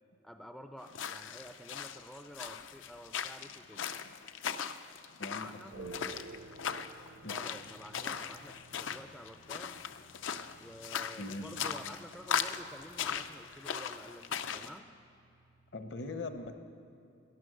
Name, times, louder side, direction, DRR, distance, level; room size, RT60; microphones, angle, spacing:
voice 1, 0.2-3.9 5.4-5.8 7.2-9.8 10.6-14.9, equal, ahead, 7 dB, 0.3 m, -50 dB
sound 1, 0.9-14.7, left 8 dB, 80° left, 0.5 m, -39 dB
voice 2, 5.2-6.1 7.2-7.4 11.2-11.5 15.7-16.5, left 2 dB, 60° left, 8 dB, 0.9 m, -42 dB
sound 2, 5.7-15.9, right 3 dB, 70° right, 0.6 m, -55 dB
12.5 x 10.5 x 6.4 m, 2.7 s
head